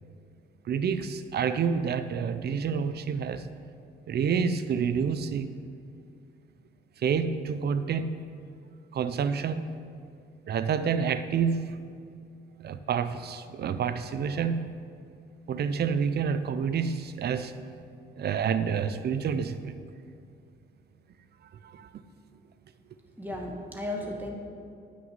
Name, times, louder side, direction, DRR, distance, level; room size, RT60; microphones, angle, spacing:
voice 1, 0.7-3.5 4.1-5.6 7.0-8.1 8.9-9.7 10.5-11.6 12.6-14.6 15.5-17.5 18.2-19.8 21.6-21.9, right 6 dB, 55° right, 12 dB, 0.6 m, -28 dB
voice 2, 23.2-24.3, left 1 dB, 10° right, 0 dB, 1.9 m, -34 dB
9.3 x 6.4 x 7.9 m, 2.4 s
cardioid pair, 90°, 20 cm